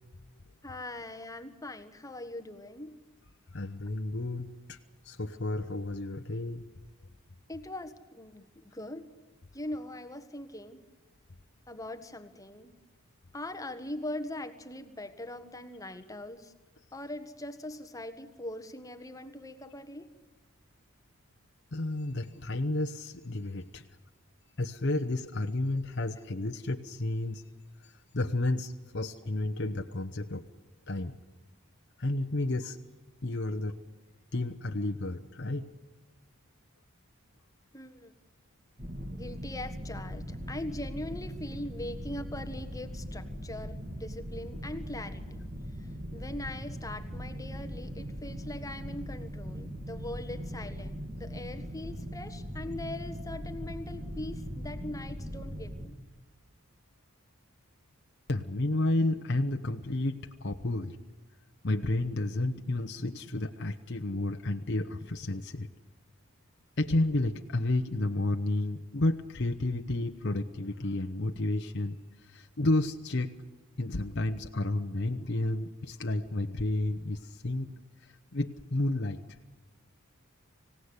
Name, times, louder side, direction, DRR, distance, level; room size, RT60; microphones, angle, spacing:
voice 1, 0.6-3.0 7.5-9.1 9.5-10.8 11.7-12.8 13.3-16.5 16.9-20.1 25.9-26.0 26.3-26.4 37.7-38.1 39.1-45.4 45.8-56.0, left 1 dB, 15° left, 8 dB, 1.4 m, -41 dB
voice 2, 3.5-4.8 5.0-6.6 19.6-19.7 21.7-23.8 24.6-27.4 27.8-30.4 30.9-31.2 32.0-32.8 33.2-33.8 34.3-35.7 58.3-61.0 61.6-65.7 66.8-72.0 72.2-73.3 73.8-77.7 78.0-79.2, left 2 dB, 50° left, 5 dB, 0.9 m, -31 dB
sound 1, 38.8-55.9, equal, 35° right, 2.6 m, -40 dB
25.5 x 17.0 x 9.7 m, 1.3 s
head